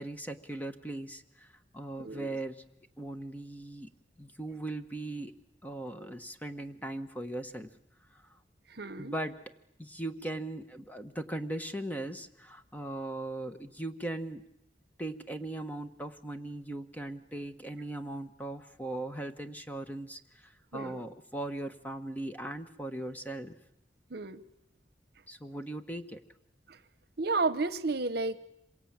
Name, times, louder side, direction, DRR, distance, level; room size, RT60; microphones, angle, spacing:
voice 1, 0.0-1.5 1.7-2.6 3.0-3.9 4.2-5.3 5.6-7.7 8.1-8.2 9.0-9.4 9.8-14.4 15.0-23.5 25.3-26.2, right 1 dB, 10° left, 8 dB, 1.2 m, -39 dB
voice 2, 2.0-2.4 8.7-9.1 20.7-21.0 24.1-24.4 26.7-26.8 27.2-28.4, right 3 dB, 60° right, 15 dB, 1.0 m, -32 dB
26.5 x 23.5 x 8.9 m, 0.79 s
head